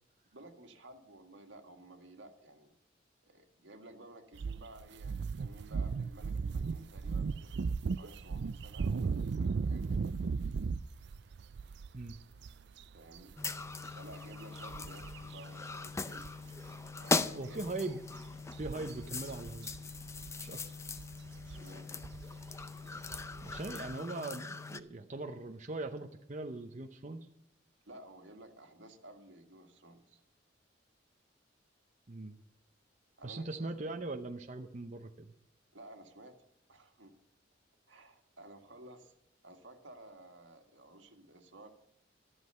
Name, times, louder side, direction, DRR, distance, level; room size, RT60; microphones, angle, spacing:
voice 1, 0.3-2.7 3.2-7.5 7.9-10.2 12.9-13.3 13.9-16.3 17.0-17.7 21.4-21.9 27.9-30.2 33.2-33.9 35.7-36.4 36.7-37.1 37.9-39.1 39.4-41.7, right 1 dB, 80° right, 5 dB, 1.9 m, -54 dB
sound 1, 4.4-15.4 15.7-15.9 16.2-24.0, right 5 dB, 60° right, 0.4 m, -37 dB
sound 2, 13.4-24.8, left 3 dB, 15° left, 0.5 m, -40 dB
voice 2, 17.3-18.0 18.5-19.7 20.4-20.6 23.4-27.3 32.1-32.4 33.2-35.3, right 2 dB, 40° right, 5 dB, 0.7 m, -40 dB
13.0 x 11.0 x 5.6 m, 0.78 s
head